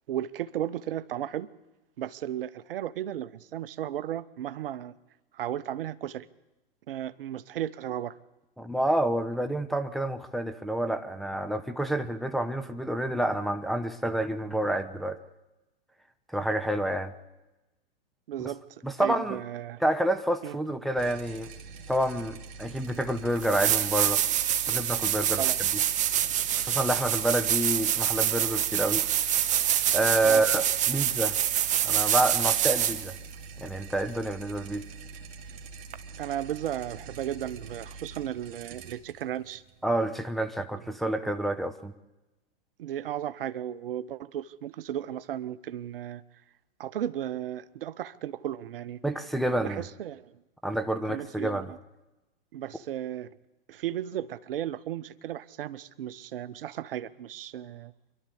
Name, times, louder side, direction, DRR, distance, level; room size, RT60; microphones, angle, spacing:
voice 1, 0.1-1.5 2.0-4.9 5.3-6.3 6.9-8.2 18.3-19.8 20.4-20.6 25.4-25.6 30.2-30.4 36.2-39.6 42.8-46.2 46.8-49.0 49.6-50.3 51.1-51.8 52.5-53.3 53.7-57.9, right 11 dB, 70° right, 17 dB, 0.8 m, -35 dB
voice 2, 8.6-15.2 16.3-17.1 18.4-18.5 18.8-19.4 19.8-21.5 21.9-24.2 24.7-25.8 26.6-29.1 29.9-31.4 31.8-33.2 33.6-34.8 39.8-41.9 49.0-49.8 50.6-51.7, right 1 dB, ahead, 7 dB, 0.8 m, -28 dB
sound 1, 21.0-40.3, right 4 dB, 50° right, 2.1 m, -45 dB
sound 2, 22.9-23.0 23.4-33.2 35.9-36.0, right 10 dB, 25° right, 0.9 m, -26 dB
26.0 x 12.0 x 8.4 m, 1.0 s
hypercardioid pair, 115°, 29 cm